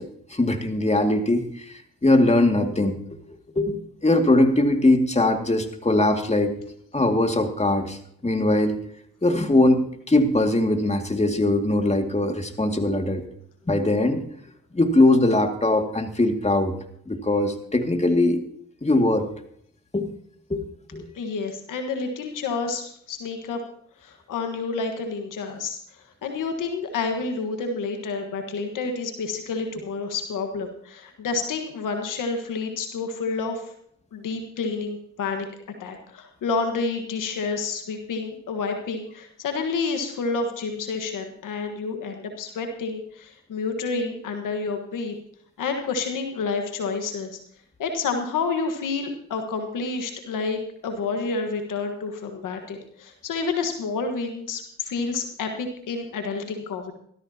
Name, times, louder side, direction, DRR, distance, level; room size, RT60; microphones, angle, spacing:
voice 1, 0.0-3.0 3.3-6.5 6.9-8.8 9.2-13.2 13.7-14.2 14.7-16.7 17.1-18.4 18.8-19.3 19.9-20.1 20.5-21.1, left 2 dB, 20° left, 5 dB, 2.2 m, -21 dB
voice 2, 21.1-23.6 24.0-25.8 26.2-33.6 34.1-35.5 35.8-45.1 45.6-47.4 47.8-56.9, left 4 dB, 80° left, 5 dB, 1.5 m, -29 dB
17.5 x 13.5 x 2.9 m, 0.66 s
supercardioid pair, 40°, 31 cm